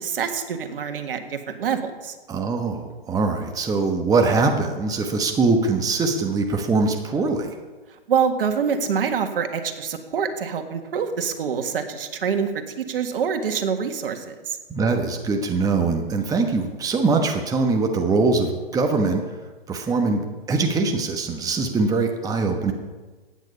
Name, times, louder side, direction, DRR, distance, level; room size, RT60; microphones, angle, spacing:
voice 1, 0.0-2.2 8.1-14.6, right 6 dB, 65° right, 6 dB, 1.8 m, -26 dB
voice 2, 2.3-7.5 14.7-19.2 19.7-22.7, right 3 dB, 10° right, 4 dB, 1.1 m, -22 dB
15.5 x 9.3 x 5.5 m, 1.3 s
hypercardioid pair, 125°, 30 cm